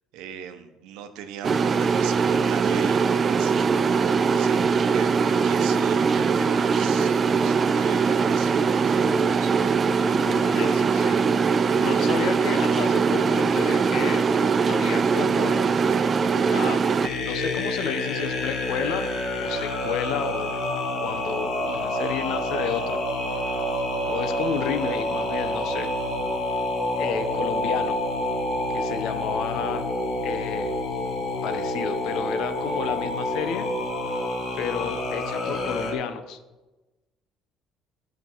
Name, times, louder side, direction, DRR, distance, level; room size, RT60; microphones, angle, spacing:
voice 1, 0.1-3.7 4.4-9.6, right 8 dB, 85° right, 8 dB, 0.9 m, -39 dB
Microwave sounds, 1.4-17.1, right 5 dB, 25° right, 0.3 m, -21 dB
voice 2, 10.3-11.5 11.8-14.3 14.7-15.8 16.4-16.8 17.2-19.1 19.4-20.5 21.0-23.0 23.5-23.6 24.0-25.9 26.9-28.0 28.7-29.9 30.2-30.8 31.4-33.7 34.5-36.4, left 7 dB, 60° left, 10 dB, 0.8 m, -31 dB
sound 1, 17.0-35.9, left 1 dB, 45° left, 1.3 m, -28 dB
14.0 x 5.2 x 4.5 m, 1.1 s
cardioid pair, 175°, 0 cm